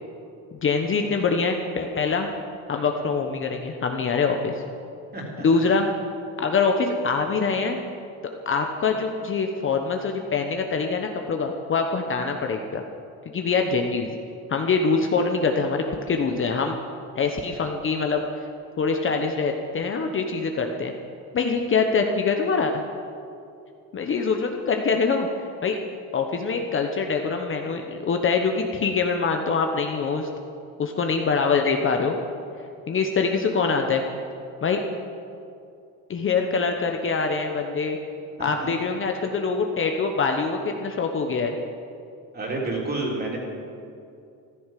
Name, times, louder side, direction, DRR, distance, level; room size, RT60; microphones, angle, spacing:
voice 1, 0.6-2.3 2.7-4.6 5.4-5.9 6.4-7.8 8.5-12.8 13.3-14.1 14.5-16.8 17.1-18.5 18.8-20.9 21.3-22.8 23.9-25.8 26.1-30.3 30.8-32.2 32.9-34.0 34.6-34.8 36.1-38.0 38.4-41.6, left 4 dB, 35° left, 4 dB, 1.1 m, -24 dB
voice 2, 5.1-5.4 38.4-38.7 42.3-43.4, right 2 dB, 25° right, -2 dB, 3.6 m, -29 dB
14.5 x 12.5 x 7.6 m, 2.5 s
cardioid pair, 135°, 37 cm